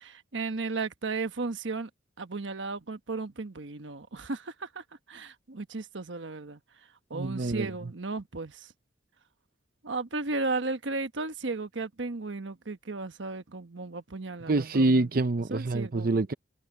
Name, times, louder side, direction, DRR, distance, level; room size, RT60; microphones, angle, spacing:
voice 1, 0.0-1.9 2.2-6.6 7.1-8.7 9.8-15.0 15.5-16.1, right 3 dB, 90° right, 1.2 m, -35 dB
voice 2, 7.1-7.7 14.5-16.3, right 2 dB, 50° right, 0.7 m, -26 dB
head